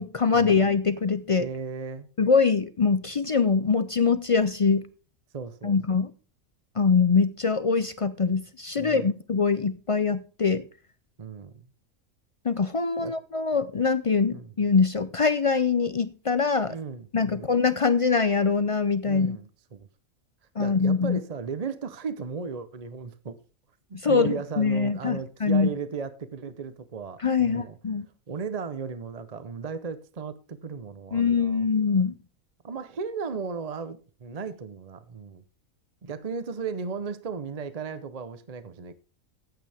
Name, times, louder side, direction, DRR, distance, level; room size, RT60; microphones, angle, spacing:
voice 1, 0.0-1.5 2.2-4.8 5.6-6.1 6.8-10.6 12.4-16.8 17.1-19.4 20.6-21.2 23.9-25.7 27.2-28.1 31.1-32.2, left 5 dB, 60° left, 0.3 m, -23 dB
voice 2, 1.4-2.1 5.3-5.8 8.8-9.1 11.2-11.5 13.0-13.2 14.3-14.5 16.7-17.5 19.0-19.9 20.6-23.4 23.9-27.8 28.3-31.7 32.6-35.4 36.0-38.9, right 5 dB, 35° right, 0.7 m, -35 dB
14.0 x 9.2 x 3.4 m
omnidirectional pair, 1.4 m